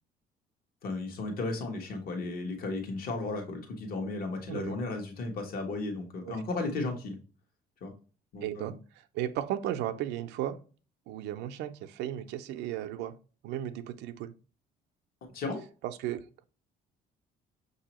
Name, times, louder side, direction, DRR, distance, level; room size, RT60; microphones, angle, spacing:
voice 1, 0.8-7.2 7.8-7.9 8.3-8.8 15.3-15.6, left 3 dB, 60° left, 3 dB, 1.2 m, -34 dB
voice 2, 4.5-4.8 6.2-6.4 8.4-8.7 9.1-10.6 11.1-13.1 13.4-14.3 15.8-16.2, right 11 dB, 85° right, 10 dB, 0.5 m, -35 dB
6.0 x 2.7 x 2.9 m, 0.36 s
cardioid pair, 110°, 17 cm